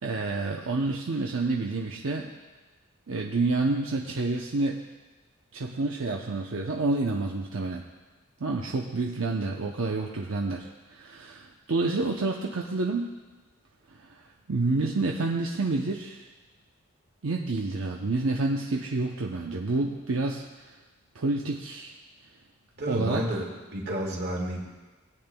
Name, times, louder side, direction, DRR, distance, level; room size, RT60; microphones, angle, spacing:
voice 1, 0.0-2.3 3.1-4.9 5.5-7.8 8.4-13.2 14.1-14.2 14.5-16.3 17.2-20.4 21.1-22.0 22.9-23.4, right 3 dB, 85° right, 0 dB, 0.7 m, -28 dB
voice 2, 22.8-24.6, right 1 dB, 55° right, -1 dB, 1.9 m, -31 dB
19.0 x 8.8 x 2.3 m, 1.2 s
head